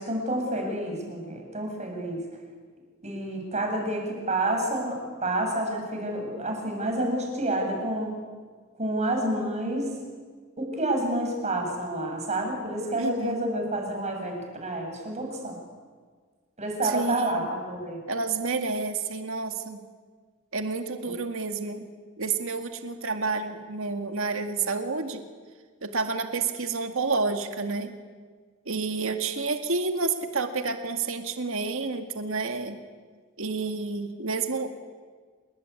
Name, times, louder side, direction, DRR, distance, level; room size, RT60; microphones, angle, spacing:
voice 1, 0.0-2.2 3.0-8.1 8.8-9.9 10.6-15.6 16.6-18.0, right 1 dB, 35° right, 2 dB, 7.3 m, -29 dB
voice 2, 13.0-13.5 16.9-17.5 18.1-19.8 20.5-21.9 22.2-25.2 25.8-27.9 28.7-32.8 33.4-34.7, right 4 dB, 65° right, 6 dB, 2.1 m, -29 dB
27.5 x 21.5 x 9.7 m, 1.5 s
head